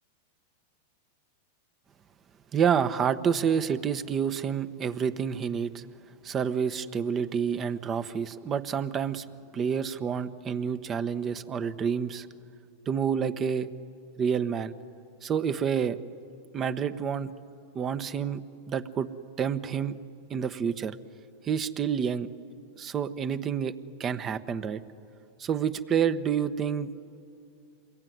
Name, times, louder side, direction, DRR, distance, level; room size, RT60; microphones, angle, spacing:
voice 1, 2.5-5.8 6.2-9.2 9.5-12.3 12.9-13.7 14.2-14.7 15.2-16.0 16.5-17.3 17.7-18.4 18.7-19.1 19.4-20.0 20.3-20.9 21.4-22.3 22.8-23.7 24.0-24.8 25.4-26.9, right 7 dB, 30° right, 11 dB, 1.2 m, -28 dB
27.5 x 22.0 x 9.5 m, 2.5 s
hypercardioid pair, 110°, 0 cm